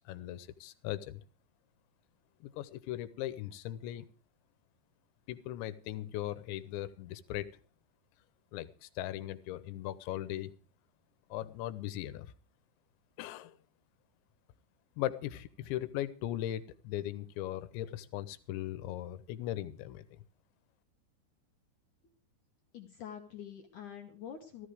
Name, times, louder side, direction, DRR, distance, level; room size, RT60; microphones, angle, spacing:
voice 1, 0.1-1.2 2.4-4.1 5.3-7.5 8.5-10.5 11.3-12.3 13.2-13.6 15.0-20.1, left 13 dB, 85° left, 15 dB, 3.2 m, -38 dB
voice 2, 22.7-24.7, left 8 dB, 65° left, 3 dB, 2.0 m, -46 dB
15.0 x 14.0 x 4.9 m, 0.36 s
omnidirectional pair, 5.2 m